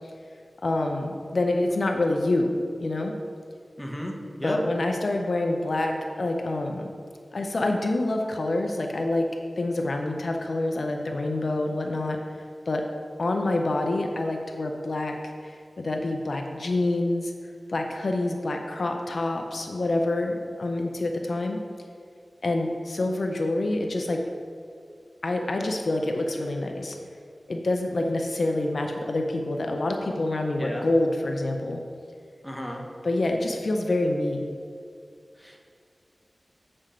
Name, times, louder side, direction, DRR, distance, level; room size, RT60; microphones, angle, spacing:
voice 1, 0.6-3.1 4.4-6.9 7.3-9.3 9.6-12.2 12.7-12.9 13.2-15.2 15.4-17.3 17.7-21.6 22.4-24.2 25.2-27.0 27.5-31.8 33.0-34.5, left 2 dB, 70° left, 3 dB, 0.5 m, -27 dB
voice 2, 3.8-4.6 30.6-30.9 32.4-32.8 35.4-35.6, equal, 5° left, 0 dB, 1.0 m, -33 dB
7.4 x 4.3 x 5.1 m, 2.2 s
wide cardioid pair, 90°, 0 cm